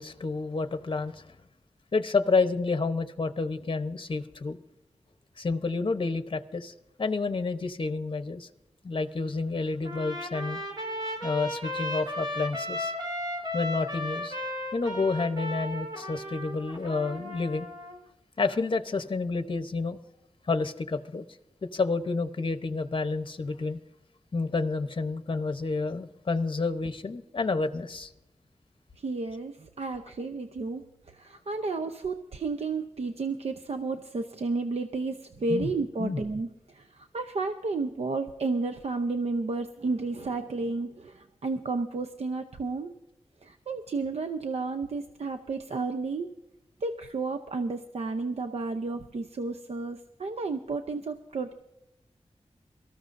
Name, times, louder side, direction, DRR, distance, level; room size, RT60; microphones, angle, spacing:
voice 1, 0.0-1.3 1.9-4.6 5.4-6.7 7.0-8.5 8.8-10.6 11.2-12.9 13.5-14.4 14.7-17.7 18.4-20.0 20.5-21.2 21.6-23.8 24.3-28.1 35.5-35.7 36.0-36.2, left 3 dB, 50° left, 10 dB, 0.8 m, -29 dB
Trumpet, 9.8-18.0, equal, 40° right, 3.4 m, -35 dB
voice 2, 29.0-42.9 43.4-46.3 46.8-51.5, right 3 dB, 70° right, 8 dB, 0.7 m, -32 dB
24.0 x 14.0 x 2.6 m, 0.95 s
wide cardioid pair, 105°, 11 cm